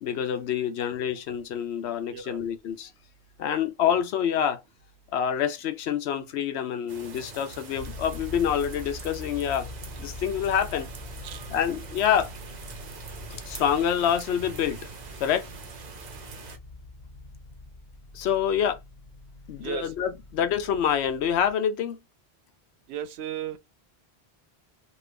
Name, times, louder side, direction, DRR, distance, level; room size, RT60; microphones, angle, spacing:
voice 1, 0.0-2.9 3.4-4.6 5.1-9.7 10.0-10.9 11.5-12.3 13.3-14.8 15.2-15.5 18.1-18.8 19.5-22.0, left 8 dB, 85° left, 0.9 m, -26 dB
sound 1, 6.9-16.6, right 5 dB, 50° right, 0.7 m, -43 dB
sound 2, 7.7-21.5, left 2 dB, 45° left, 0.9 m, -44 dB
voice 2, 19.6-19.9 22.9-23.6, right 9 dB, 80° right, 0.8 m, -35 dB
2.6 x 2.6 x 3.3 m
omnidirectional pair, 1.1 m